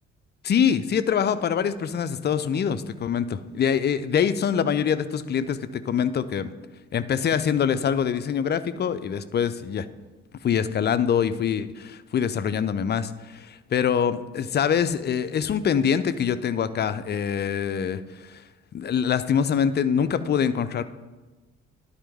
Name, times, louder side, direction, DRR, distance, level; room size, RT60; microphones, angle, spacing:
voice 1, 0.4-6.5 6.9-9.9 10.4-18.4 18.7-20.8, left 7 dB, 30° left, 12 dB, 0.5 m, -24 dB
11.5 x 4.3 x 3.5 m, 1.2 s
figure-of-eight pair, 45°, 36 cm